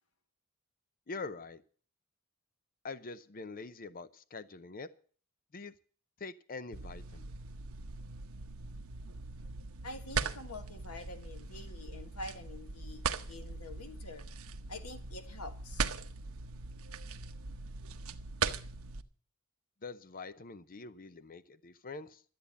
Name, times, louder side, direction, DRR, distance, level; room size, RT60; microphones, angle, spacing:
voice 1, 1.1-1.6 2.8-4.9 5.5-5.7 6.2-7.3 19.8-22.2, left 3 dB, 40° left, 0.6 m, -44 dB
sound 1, 6.7-19.0, right 5 dB, 70° right, 1.0 m, -40 dB
voice 2, 9.8-14.3 14.7-16.0, left 2 dB, 85° left, 1.7 m, -46 dB
13.0 x 8.6 x 8.3 m
head